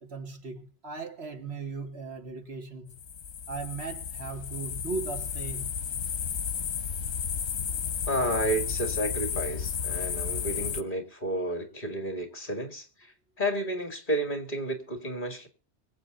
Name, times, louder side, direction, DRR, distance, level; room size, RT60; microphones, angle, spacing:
voice 1, 0.0-3.0 3.5-5.7, right 4 dB, 75° right, 1.9 m, -37 dB
sound 1, 2.9-10.8, left 7 dB, 85° left, 1.2 m, -33 dB
voice 2, 8.1-13.1 13.4-15.5, right 1 dB, 45° left, 2.7 m, -31 dB
23.5 x 8.2 x 3.9 m
omnidirectional pair, 1.1 m